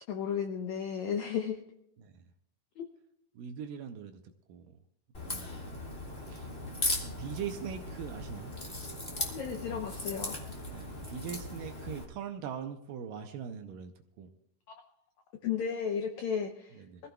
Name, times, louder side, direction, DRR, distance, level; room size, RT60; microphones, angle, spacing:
voice 1, 0.1-1.6 2.8-2.9 9.3-10.4 14.7-14.8 15.4-17.1, left 7 dB, 90° left, 5 dB, 1.6 m, -34 dB
voice 2, 3.4-4.2 4.5-4.8 5.2-5.8 6.3-6.5 7.0-8.5 10.7-13.9 14.2-14.3 16.7-17.1, right 8 dB, 75° right, 7 dB, 2.1 m, -41 dB
Crack, 5.1-12.0, left 2 dB, 35° left, 1.0 m, -38 dB
24.5 x 15.0 x 2.3 m, 0.77 s
omnidirectional pair, 4.5 m